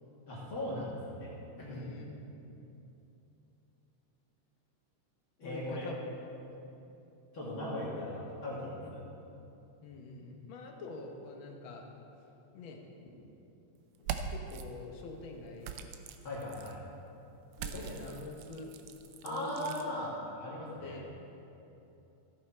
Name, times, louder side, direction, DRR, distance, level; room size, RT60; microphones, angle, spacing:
voice 1, 0.3-1.3 1.6-1.9 5.4-5.9 7.3-9.0 16.2-16.8 17.6-18.1 19.2-20.1 20.4-21.0, left 1 dB, 45° left, -7 dB, 2.3 m, -38 dB
voice 2, 1.6-2.6 5.4-6.0 6.5-6.6 9.8-11.8 12.5-12.8 14.0-15.7 17.6-18.7 19.2-19.7 20.4-21.1, left 3 dB, 70° left, 2 dB, 1.2 m, -46 dB
sound 1, 14.0-14.6 15.6-16.7 17.5-19.9, right 7 dB, 80° right, 1.5 m, -42 dB
14.5 x 7.9 x 4.4 m, 2.9 s
omnidirectional pair, 3.6 m